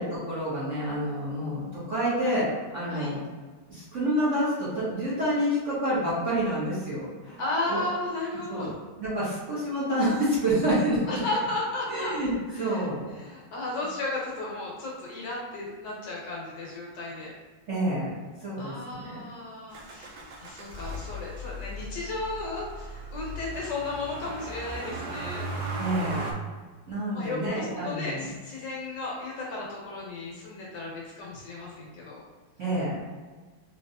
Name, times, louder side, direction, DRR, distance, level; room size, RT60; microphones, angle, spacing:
voice 1, 0.0-2.5 2.7-3.2 3.7-7.4 7.7-7.8 8.5-8.7 9.0-11.2 11.9-13.1 17.7-19.2 25.8-26.3 26.9-28.3 32.6-33.0, right 1 dB, 45° right, -10 dB, 1.2 m, -28 dB
voice 2, 7.4-8.7 11.1-12.2 12.5-12.9 13.1-17.3 18.6-25.4 27.1-32.2, left 2 dB, 65° left, -4 dB, 1.4 m, -34 dB
Motor vehicle (road), 19.7-26.3, right 1 dB, 70° right, 1.1 m, -37 dB
3.9 x 3.0 x 2.7 m, 1.4 s
omnidirectional pair, 2.3 m